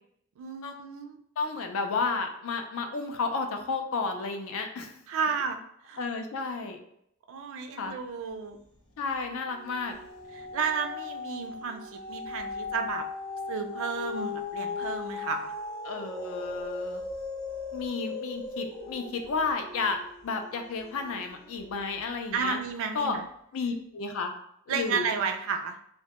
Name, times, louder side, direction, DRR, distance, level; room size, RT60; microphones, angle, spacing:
voice 1, 0.4-1.2 5.1-5.6 5.8-6.0 7.3-8.6 10.3-13.1 13.5-15.5 22.3-23.3 24.7-25.8, right 5 dB, 65° right, 6 dB, 0.3 m, -32 dB
voice 2, 1.4-4.9 6.0-6.8 7.8-8.0 9.0-9.9 15.8-17.0 17.7-20.0 20.2-22.6 22.9-23.2 23.5-24.3 24.7-25.0, left 4 dB, 65° left, 5 dB, 0.4 m, -32 dB
sound 1, 8.4-8.9 9.3-21.8 22.3-22.4, left 4 dB, 20° left, 0.7 m, -38 dB
2.1 x 2.1 x 2.8 m, 0.71 s
head